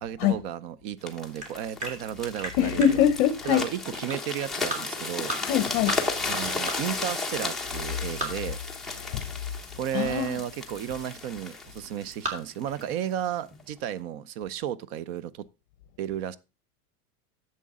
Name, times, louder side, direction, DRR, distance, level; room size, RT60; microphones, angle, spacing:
voice 1, 0.0-3.0 3.4-5.3 6.3-8.6 9.8-15.5 16.0-16.4, right 10 dB, 40° right, 0.6 m, -33 dB
sound 1, 1.1-12.9 13.5-13.7, left 3 dB, ahead, 1.0 m, -34 dB
sound 2, 1.1-13.3, right 2 dB, 15° right, 2.8 m, -38 dB
voice 2, 2.6-3.6 5.4-6.0 9.0-9.3 9.9-10.4, left 9 dB, 50° left, 0.9 m, -23 dB
11.0 x 7.6 x 3.6 m
supercardioid pair, 165°, 46 cm